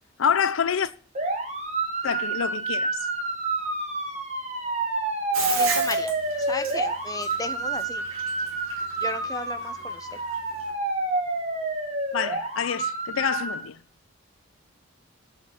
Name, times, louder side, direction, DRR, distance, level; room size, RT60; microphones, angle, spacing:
voice 1, 0.2-0.9 2.0-3.0 12.1-13.8, left 7 dB, 80° left, 0.5 m, -26 dB
sound 1, 1.1-13.6, right 3 dB, 30° right, 2.0 m, -28 dB
Bathtub (filling or washing), 5.3-10.7, right 5 dB, 90° right, 2.8 m, -33 dB
voice 2, 5.6-6.1 6.5-8.0 9.0-10.1, left 2 dB, 15° left, 0.8 m, -34 dB
8.5 x 6.0 x 6.8 m
head